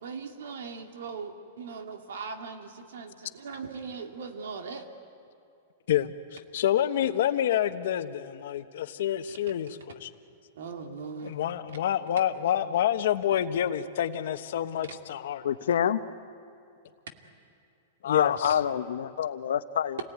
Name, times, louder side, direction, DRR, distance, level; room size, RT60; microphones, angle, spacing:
voice 1, 0.0-4.8 9.3-9.4 10.6-11.4, right 5 dB, 85° right, 5 dB, 2.5 m, -39 dB
voice 2, 6.5-10.1 11.2-15.4 18.0-18.6, left 11 dB, 65° left, 10 dB, 1.1 m, -28 dB
voice 3, 15.4-16.0 18.0-20.0, left 9 dB, 85° left, 11 dB, 1.0 m, -27 dB
28.0 x 18.5 x 9.5 m, 2.6 s
supercardioid pair, 165°, 0 cm